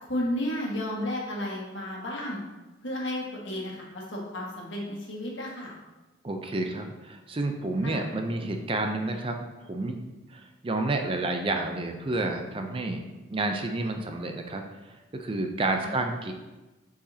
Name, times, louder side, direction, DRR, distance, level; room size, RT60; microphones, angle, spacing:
voice 1, 0.0-2.4 2.8-5.7 7.8-8.0 15.8-15.9, left 1 dB, 75° left, -3 dB, 1.5 m, -33 dB
voice 2, 6.2-10.0 10.3-13.0 13.3-16.3, right 2 dB, 30° right, 4 dB, 0.5 m, -30 dB
7.0 x 4.9 x 2.7 m, 1.1 s
head